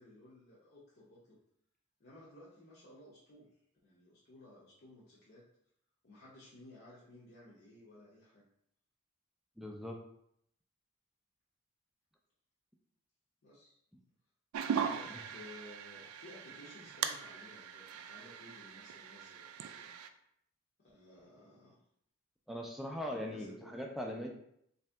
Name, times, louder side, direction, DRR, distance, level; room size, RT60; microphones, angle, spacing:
voice 1, 0.0-1.4 2.0-3.5 3.8-5.4 6.0-8.4 13.4-13.7 14.7-19.9 20.8-21.8 23.1-23.7, left 1 dB, 50° left, -7 dB, 0.7 m, -56 dB
voice 2, 9.6-10.0 15.1-15.2 22.5-24.3, equal, ahead, 1 dB, 0.3 m, -40 dB
sound 1, 14.5-20.1, right 7 dB, 90° right, 0.3 m, -40 dB
3.2 x 2.7 x 3.4 m, 0.72 s
head